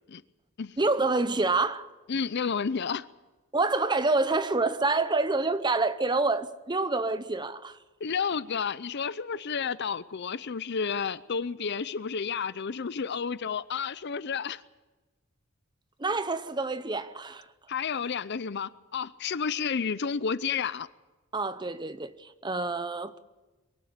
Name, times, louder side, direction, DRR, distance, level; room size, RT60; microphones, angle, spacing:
voice 1, 0.8-1.9 3.5-7.8 16.0-17.4 21.3-23.2, right 3 dB, 20° right, 0.8 m, -27 dB
voice 2, 2.1-3.1 8.0-14.6 17.7-20.9, left 6 dB, 50° left, 0.6 m, -31 dB
23.5 x 12.0 x 10.0 m
head